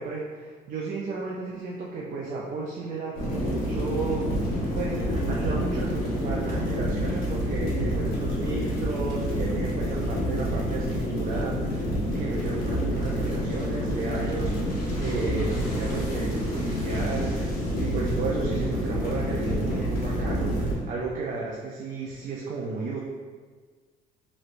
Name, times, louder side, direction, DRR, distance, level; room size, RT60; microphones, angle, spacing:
voice 1, 0.0-11.9 12.1-23.0, right 4 dB, 50° right, -3 dB, 0.5 m, -33 dB
sound 1, 3.1-20.7, equal, 60° left, 1.0 m, -28 dB
3.0 x 3.0 x 2.6 m, 1.5 s
cardioid pair, 110°, 17 cm